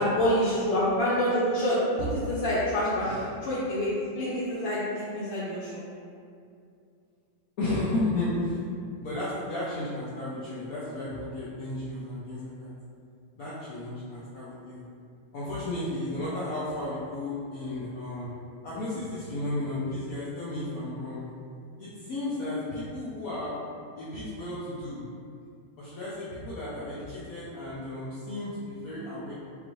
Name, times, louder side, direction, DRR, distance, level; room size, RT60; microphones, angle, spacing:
voice 1, 0.0-5.8, equal, 65° left, -9 dB, 1.3 m, -27 dB
voice 2, 7.6-8.6 9.0-12.7 13.4-14.8 15.3-18.3 18.6-21.2 21.8-23.5 24.0-25.0 25.8-29.3, left 2 dB, 85° left, -9 dB, 0.7 m, -33 dB
5.2 x 2.5 x 3.0 m, 2.4 s
omnidirectional pair, 2.4 m